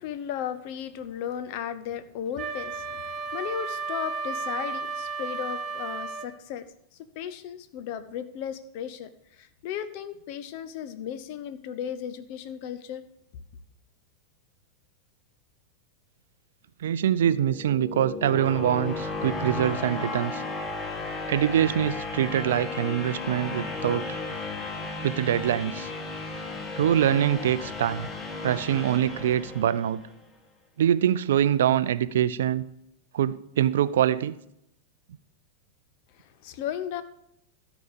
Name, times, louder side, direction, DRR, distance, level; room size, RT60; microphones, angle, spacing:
voice 1, 0.0-6.7 7.1-13.0 36.1-37.0, left 9 dB, 45° left, 11 dB, 0.9 m, -35 dB
Wind instrument woodwind instrument, 2.4-6.4, right 4 dB, 25° right, 0.9 m, -33 dB
voice 2, 16.8-20.4 21.3-24.2 25.0-25.9 26.8-28.1 28.4-30.0 30.8-32.6 33.1-34.4, right 10 dB, 60° right, 16 dB, 0.4 m, -24 dB
sound 1, 17.1-30.1, left 3 dB, 20° left, 1.6 m, -34 dB
13.0 x 5.1 x 6.8 m, 0.78 s
figure-of-eight pair, 90°, 0 cm